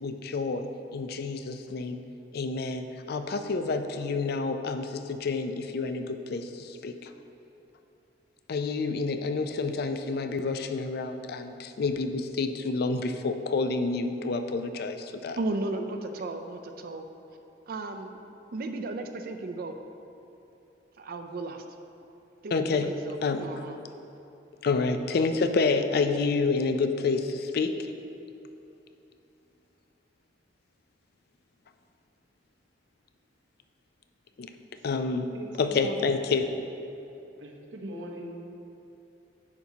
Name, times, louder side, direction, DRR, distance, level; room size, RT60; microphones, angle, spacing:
voice 1, 0.0-2.0 2.3-7.1 8.5-15.4 22.5-23.5 24.6-27.9 34.4-34.5 34.8-36.5, left 4 dB, 55° left, 8 dB, 0.4 m, -29 dB
voice 2, 15.4-17.1 17.7-18.2 18.5-19.8 21.0-21.6 22.4-23.8, right 2 dB, 55° right, 7 dB, 0.4 m, -35 dB
voice 3, 35.3-36.0 37.4-38.3, right 1 dB, 85° right, 0 dB, 0.9 m, -40 dB
9.6 x 5.8 x 2.8 m, 2.8 s
head